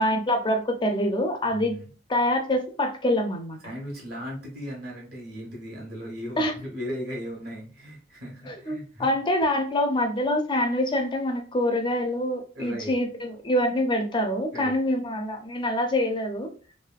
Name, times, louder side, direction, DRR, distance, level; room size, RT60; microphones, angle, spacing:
voice 1, 0.0-1.7 2.1-3.6 6.4-6.5 8.5-16.5, left 1 dB, 25° left, 4 dB, 0.4 m, -25 dB
voice 2, 1.4-1.9 3.6-9.1 12.5-12.9 14.5-14.7, equal, 55° right, -2 dB, 1.3 m, -37 dB
3.3 x 2.6 x 2.3 m, 0.38 s
head